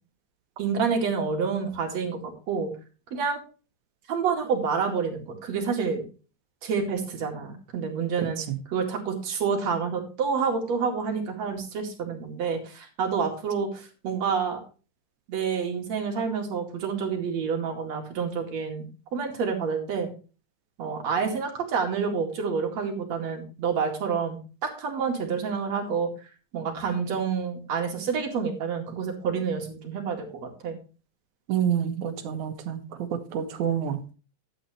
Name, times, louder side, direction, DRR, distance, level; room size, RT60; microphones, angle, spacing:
voice 1, 0.6-2.7 3.1-3.4 4.1-6.0 6.6-8.4 8.7-14.6 15.3-20.1 20.8-26.1 26.5-30.8, right 6 dB, 60° right, 2 dB, 3.4 m, -28 dB
voice 2, 31.5-34.0, right 9 dB, 75° right, 8 dB, 2.6 m, -28 dB
12.0 x 8.9 x 3.2 m, 0.34 s
omnidirectional pair, 3.4 m